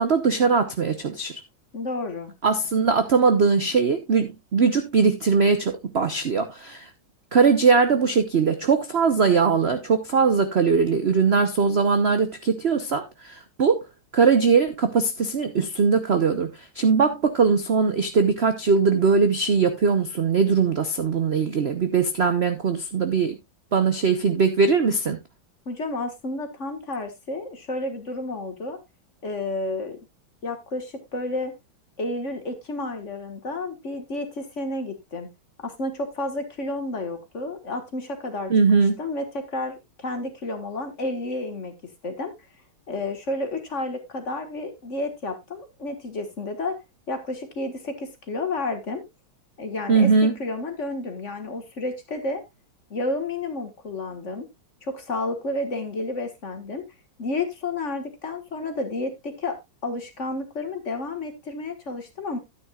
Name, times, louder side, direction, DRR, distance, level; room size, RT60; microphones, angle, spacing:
voice 1, 0.0-1.3 2.4-6.9 7.3-13.8 14.1-23.4 23.7-25.2 38.5-38.9 49.9-50.3, right 5 dB, 60° right, 0.6 m, -21 dB
voice 2, 1.7-2.3 25.6-28.8 29.2-30.0 30.4-31.5 32.0-35.3 35.6-38.5 38.8-42.3 42.9-46.8 47.1-49.0 49.6-52.4 52.9-54.5 54.8-56.9 57.2-62.4, left 2 dB, 40° left, 1.7 m, -31 dB
12.0 x 9.6 x 2.3 m
omnidirectional pair, 2.3 m